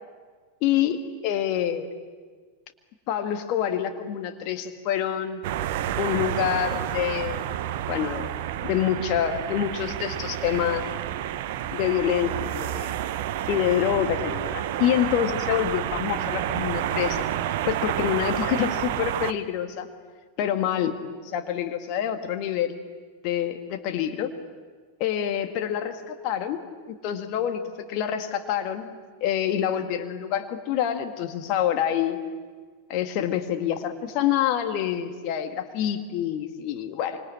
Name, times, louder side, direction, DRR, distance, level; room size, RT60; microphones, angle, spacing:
voice 1, 0.6-1.0 1.2-1.9 3.1-5.4 6.0-7.4 7.9-8.3 8.6-10.9 11.7-13.0 13.5-19.9 20.4-20.9 21.3-22.8 23.2-24.3 25.0-26.6 27.0-27.6 27.9-28.9 29.2-32.2 32.9-37.2, left 10 dB, 40° left, 6 dB, 2.0 m, -26 dB
sound 1, 5.4-19.3, right 12 dB, 50° right, 1.0 m, -29 dB
26.0 x 26.0 x 8.8 m, 1.5 s
figure-of-eight pair, 90°, 0 cm